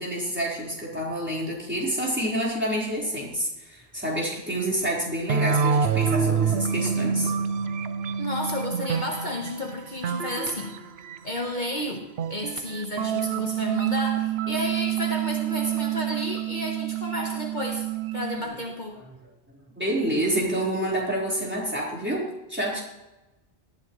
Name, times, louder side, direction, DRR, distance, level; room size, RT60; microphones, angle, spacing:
voice 1, 0.0-7.3 19.8-22.8, right 1 dB, 10° right, -5 dB, 4.4 m, -28 dB
sound 1, 5.3-11.4 12.2-18.4, right 7 dB, 70° right, 0.9 m, -27 dB
voice 2, 8.2-10.8 11.2-17.9 18.1-19.0, left 1 dB, 45° left, 1 dB, 1.4 m, -32 dB
18.5 x 13.0 x 3.2 m, 1.0 s
omnidirectional pair, 1.1 m